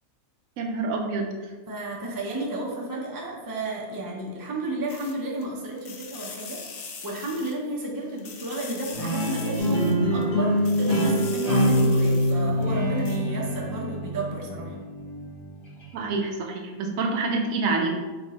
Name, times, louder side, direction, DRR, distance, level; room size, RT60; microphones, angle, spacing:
voice 1, 0.6-1.3 15.9-18.0, right 3 dB, 75° right, 2 dB, 1.0 m, -27 dB
voice 2, 1.7-6.6 7.0-14.8, right 1 dB, 30° right, -3 dB, 0.3 m, -32 dB
sound 1, 4.9-5.4 5.8-7.9 8.2-10.2 10.6-12.6 13.0-13.2, left 5 dB, 65° left, 0.7 m, -41 dB
Guitar, 8.9-16.1, right 1 dB, 20° left, 1.0 m, -31 dB
sound 2, 9.6-13.5, left 1 dB, 45° left, 1.1 m, -23 dB
4.4 x 2.3 x 4.1 m, 1.3 s
omnidirectional pair, 1.5 m